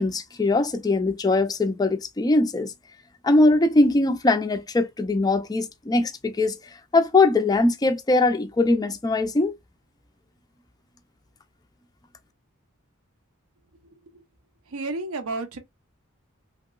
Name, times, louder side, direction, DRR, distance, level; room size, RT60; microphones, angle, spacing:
voice 1, 0.0-2.7 3.2-6.6 6.9-9.5, left 2 dB, 20° left, 0.4 m, -21 dB
voice 2, 14.7-15.6, right 3 dB, 70° right, 0.7 m, -31 dB
2.9 x 2.9 x 2.2 m
head